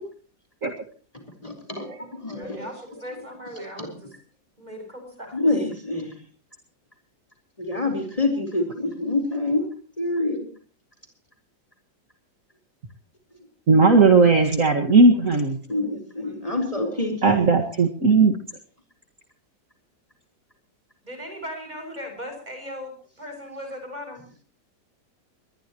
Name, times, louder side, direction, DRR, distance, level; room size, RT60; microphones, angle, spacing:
voice 1, 1.4-2.7 3.8-3.9 5.3-6.2 7.6-9.6 10.0-10.5 15.7-17.5, left 2 dB, 20° left, 4 dB, 4.4 m, -26 dB
voice 2, 2.4-4.1 4.6-5.4 16.2-16.5 16.9-17.0 21.0-24.3, equal, 20° right, 5 dB, 7.0 m, -38 dB
voice 3, 13.7-15.6 17.2-18.3, right 3 dB, 45° right, 3 dB, 2.3 m, -16 dB
23.0 x 20.0 x 3.0 m, 0.41 s
omnidirectional pair, 1.9 m